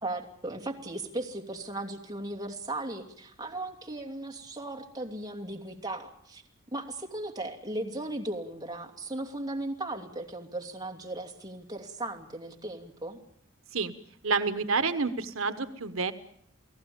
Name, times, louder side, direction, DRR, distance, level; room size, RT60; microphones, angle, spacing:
voice 1, 0.0-6.4 6.7-13.2, right 2 dB, 20° right, 1 dB, 2.8 m, -37 dB
voice 2, 14.2-16.1, right 4 dB, 75° right, 10 dB, 1.2 m, -28 dB
29.5 x 18.0 x 7.0 m, 0.67 s
head